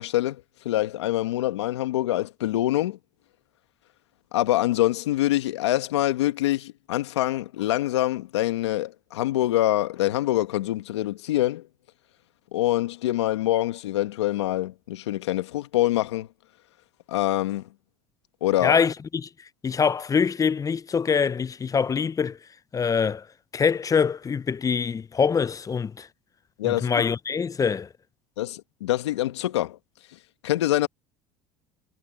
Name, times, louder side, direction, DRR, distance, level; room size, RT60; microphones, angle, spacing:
voice 1, 0.0-3.0 4.3-11.7 12.5-16.3 17.1-17.7 18.4-18.8 26.6-27.1 28.4-29.8 30.1-30.9, left 15 dB, 90° left, 1.8 m, -25 dB
voice 2, 18.6-18.9 19.6-22.4 22.7-23.2 23.5-26.1 26.6-27.9, left 6 dB, 25° left, 0.6 m, -24 dB
hypercardioid pair, 85°, 14 cm